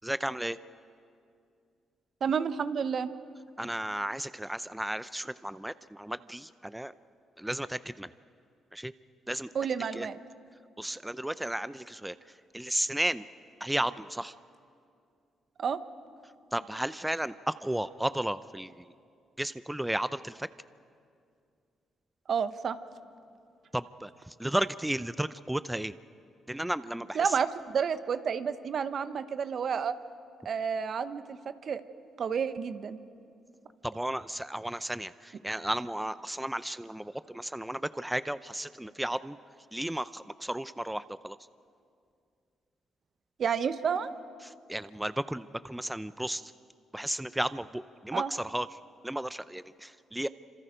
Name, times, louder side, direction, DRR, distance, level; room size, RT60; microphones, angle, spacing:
voice 1, 0.0-0.6 3.6-6.9 7.4-8.1 8.7-8.9 9.3-9.5 9.9-10.1 10.8-12.1 12.5-13.2 13.6-14.3 16.5-18.9 19.4-20.5 23.7-25.9 26.5-27.3 33.8-39.4 39.7-41.4 44.5-46.5 46.9-48.7 49.0-50.3, right 1 dB, 10° right, 14 dB, 0.6 m, -33 dB
voice 2, 2.2-3.1 9.5-10.2 15.6-15.8 22.3-22.8 27.1-29.9 30.4-31.8 32.2-33.0 43.4-44.1 48.1-48.3, right 7 dB, 60° right, 11 dB, 1.1 m, -30 dB
27.5 x 26.5 x 5.1 m, 2.4 s
supercardioid pair, 55°, 0 cm